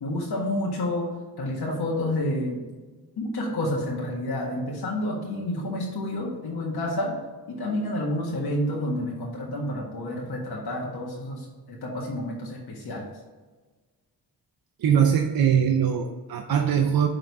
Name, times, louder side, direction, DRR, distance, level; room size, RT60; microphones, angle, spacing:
voice 1, 0.0-1.1 1.4-2.6 3.2-7.2 7.5-13.1, left 1 dB, 70° left, -3 dB, 1.7 m, -29 dB
voice 2, 14.8-17.1, right 8 dB, 60° right, 4 dB, 0.7 m, -21 dB
6.4 x 3.8 x 4.8 m, 1.3 s
cardioid pair, 80°, 40 cm